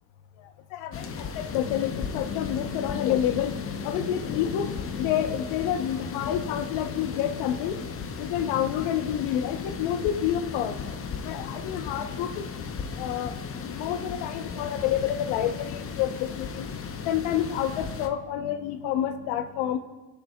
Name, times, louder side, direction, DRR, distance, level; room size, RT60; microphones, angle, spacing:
voice 1, 0.7-10.8 11.2-12.4 13.0-13.3 13.6-16.7 17.1-19.8, left 10 dB, 70° left, 9 dB, 0.9 m, -28 dB
sound 1, 0.9-18.1, left 6 dB, 30° left, 0.6 m, -36 dB
15.5 x 6.8 x 2.2 m, 1.1 s
supercardioid pair, 75°, 49 cm